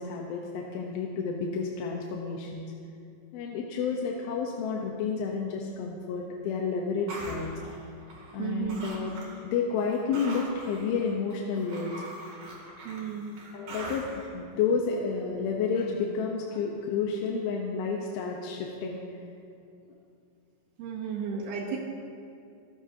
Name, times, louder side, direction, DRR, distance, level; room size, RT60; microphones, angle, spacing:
voice 1, 0.0-2.7 3.3-7.5 8.3-9.2 9.4-11.9 13.5-19.0, left 5 dB, 75° left, -1 dB, 2.8 m, -30 dB
sound 1, 7.1-8.4 8.7-9.4 9.8-14.3, right 1 dB, 60° right, 4.2 m, -42 dB
voice 2, 8.4-8.9 12.9-13.3 20.8-21.8, right 7 dB, 75° right, -1 dB, 3.0 m, -33 dB
27.5 x 14.5 x 2.9 m, 2.5 s
omnidirectional pair, 4.6 m